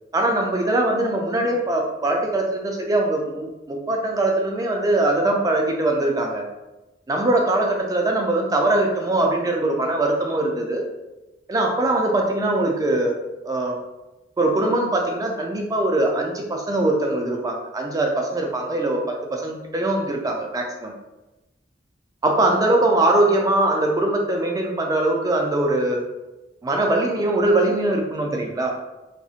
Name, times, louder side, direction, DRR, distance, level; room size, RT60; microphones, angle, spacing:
voice 1, 0.1-6.5 7.1-10.9 11.5-13.2 13.4-13.8 14.4-20.9 22.2-26.0 26.6-28.7, right 2 dB, 20° right, 1 dB, 0.3 m, -22 dB
2.4 x 2.0 x 2.7 m, 1.0 s
head